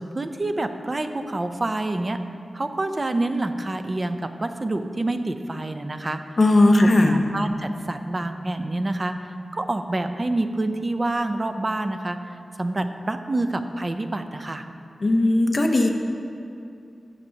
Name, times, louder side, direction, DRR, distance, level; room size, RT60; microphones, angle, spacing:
voice 1, 0.0-2.2 2.5-6.2 6.8-12.2 12.6-14.7, right 2 dB, 30° right, 8 dB, 0.5 m, -27 dB
voice 2, 6.4-7.2 15.0-15.9, left 2 dB, 40° left, 3 dB, 0.8 m, -17 dB
16.0 x 6.6 x 2.8 m, 2.5 s
wide cardioid pair, 90°, 0 cm